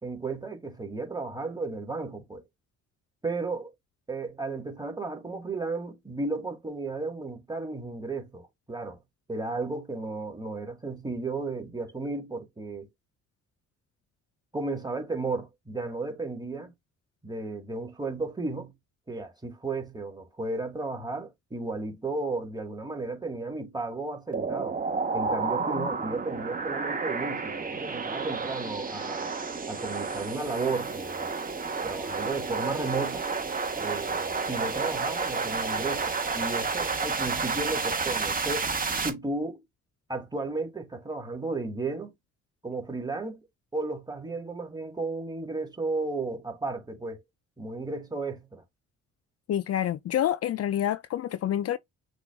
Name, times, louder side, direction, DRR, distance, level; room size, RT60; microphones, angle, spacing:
voice 1, 0.0-2.4 3.2-3.7 4.1-9.0 9.3-12.9 14.5-16.7 17.2-18.7 19.1-24.8 25.1-29.3 29.7-31.3 31.8-33.2 33.8-38.7 39.0-39.6 40.1-42.1 42.6-43.4 43.7-47.2 47.6-48.6, right 3 dB, 15° right, 1.7 m, -34 dB
sound 1, 24.3-39.1, right 4 dB, 30° right, 1.4 m, -31 dB
voice 2, 49.5-51.8, left 11 dB, 55° left, 0.5 m, -28 dB
6.0 x 2.4 x 3.5 m
cardioid pair, 90°, 30 cm